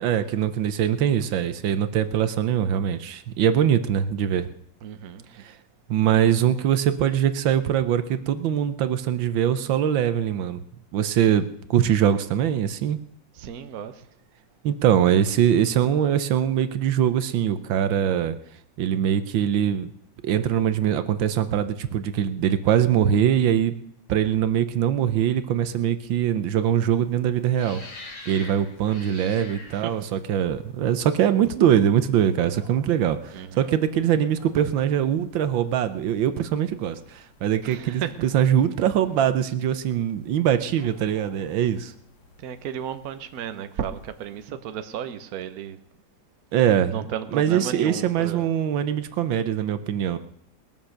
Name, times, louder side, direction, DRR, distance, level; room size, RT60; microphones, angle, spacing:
voice 1, 0.0-4.5 5.4-5.5 5.9-10.6 10.9-13.0 14.6-18.3 18.8-19.9 20.2-23.7 24.1-27.8 28.3-41.9 46.5-50.2, right 9 dB, 85° right, 1.6 m, -22 dB
voice 2, 4.8-5.2 13.4-14.0 28.2-28.6 29.7-29.9 33.3-33.7 37.6-38.1 42.4-45.8 46.9-48.5, right 9 dB, 60° right, 1.3 m, -34 dB
sound 1, 26.6-44.5, left 2 dB, 55° left, 3.0 m, -50 dB
21.0 x 7.3 x 6.5 m
omnidirectional pair, 2.1 m